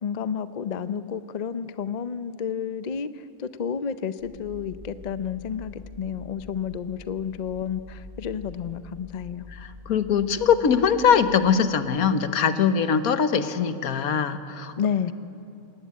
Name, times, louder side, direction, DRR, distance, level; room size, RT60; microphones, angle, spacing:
voice 1, 0.0-9.5 14.8-15.1, left 7 dB, 50° left, 13 dB, 0.5 m, -31 dB
sound 1, 4.2-11.4, left 3 dB, 70° right, 7.9 m, -45 dB
voice 2, 9.6-14.7, left 7 dB, 85° left, 11 dB, 1.5 m, -22 dB
21.5 x 18.0 x 9.4 m, 2.7 s
omnidirectional pair, 1.5 m